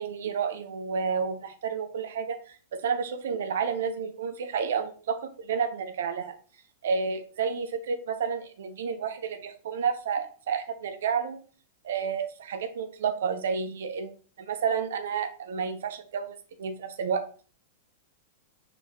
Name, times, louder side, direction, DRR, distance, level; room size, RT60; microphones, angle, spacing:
voice 1, 0.0-6.3 6.8-11.4 11.8-17.2, right 6 dB, 75° right, 9 dB, 0.6 m, -30 dB
4.4 x 4.1 x 2.8 m, 0.40 s
hypercardioid pair, 130°, 0 cm